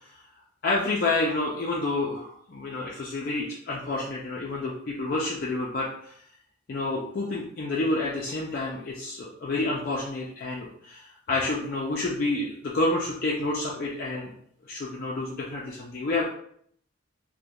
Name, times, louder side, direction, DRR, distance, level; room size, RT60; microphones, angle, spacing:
voice 1, 0.6-6.1 6.7-14.3 14.7-16.3, left 2 dB, 45° left, -4 dB, 0.3 m, -29 dB
2.3 x 2.1 x 2.8 m, 0.65 s
head